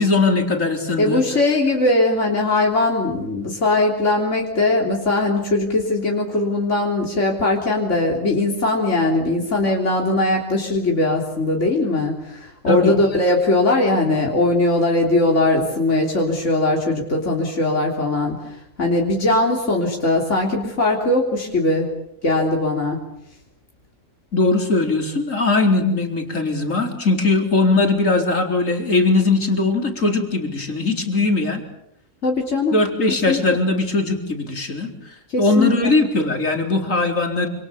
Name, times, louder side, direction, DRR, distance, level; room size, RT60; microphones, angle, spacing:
voice 1, 0.0-1.2 12.7-12.9 24.3-31.6 32.7-37.5, left 3 dB, 85° left, 3 dB, 4.5 m, -20 dB
voice 2, 1.0-21.9 22.2-23.0 32.2-32.8 33.3-33.4 35.3-35.7, left 2 dB, 70° left, -1 dB, 3.9 m, -20 dB
28.0 x 27.5 x 7.0 m, 0.77 s
omnidirectional pair, 1.3 m